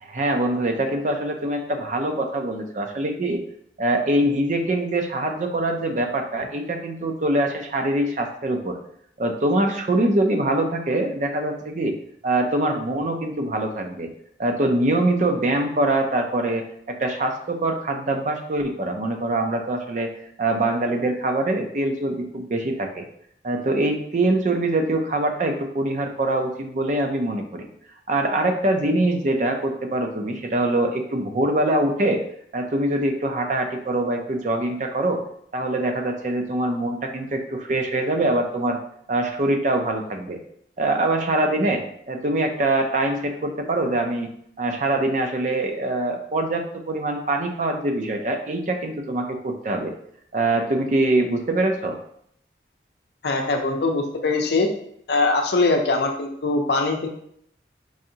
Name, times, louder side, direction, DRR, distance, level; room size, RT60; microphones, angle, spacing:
voice 1, 0.0-3.4 3.8-8.8 9.2-12.0 12.2-14.1 14.4-20.1 20.4-23.1 23.4-27.7 28.1-32.2 32.5-35.2 35.5-38.8 39.1-40.4 40.8-41.8 42.1-44.3 44.6-49.9 50.3-52.0, right 1 dB, 45° right, 4 dB, 0.4 m, -23 dB
voice 2, 53.2-54.7 55.1-57.1, left 3 dB, 70° left, 3 dB, 0.5 m, -22 dB
4.7 x 2.6 x 2.7 m, 0.69 s
head